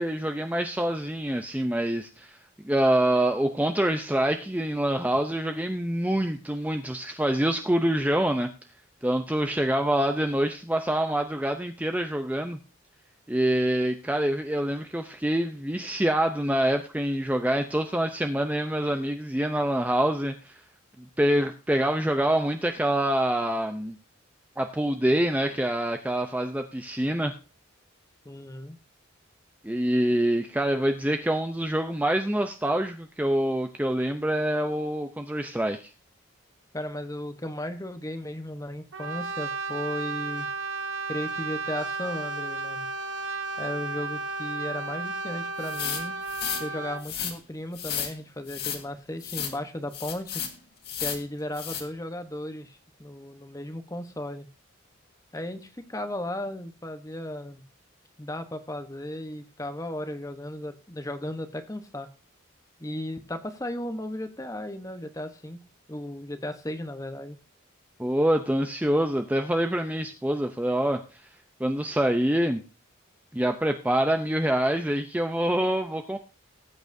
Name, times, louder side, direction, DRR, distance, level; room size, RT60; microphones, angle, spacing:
voice 1, 0.0-2.4 2.6-8.5 9.0-12.6 13.3-20.6 21.2-23.9 24.6-27.4 29.6-35.9 68.0-71.2 71.6-72.6 73.3-76.2, right 1 dB, 5° right, 6 dB, 0.5 m, -26 dB
voice 2, 28.2-28.8 36.7-40.5 41.1-42.9 43.6-46.2 46.6-50.4 51.0-54.5 55.3-57.6 58.2-62.1 62.8-65.6 65.9-67.4, left 1 dB, 15° left, 8 dB, 0.9 m, -35 dB
Brass instrument, 38.9-47.1, right 4 dB, 55° right, 1.0 m, -33 dB
sound 1, 45.6-46.6 47.0-47.3 47.7-48.1 48.5-48.8 49.2-49.5 49.9-50.5 50.8-51.2 51.5-51.8, left 8 dB, 50° left, 2.0 m, -33 dB
18.5 x 8.8 x 2.7 m, 0.32 s
head